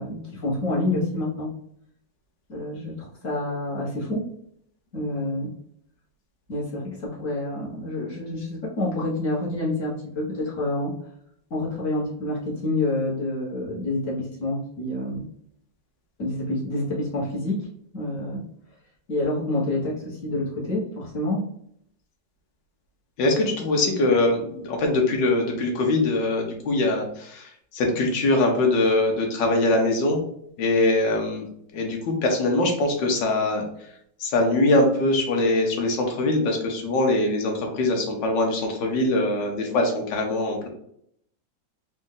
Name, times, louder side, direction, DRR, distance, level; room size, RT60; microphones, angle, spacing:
voice 1, 0.0-1.5 2.5-4.2 4.9-5.5 6.5-10.9 11.5-15.3 16.2-17.7 17.9-18.4 19.1-21.4, left 1 dB, 45° left, -4 dB, 1.6 m, -28 dB
voice 2, 23.2-30.2 30.6-33.9 34.2-40.7, left 2 dB, 70° left, 1 dB, 1.6 m, -22 dB
4.2 x 2.6 x 3.8 m, 0.70 s
omnidirectional pair, 2.1 m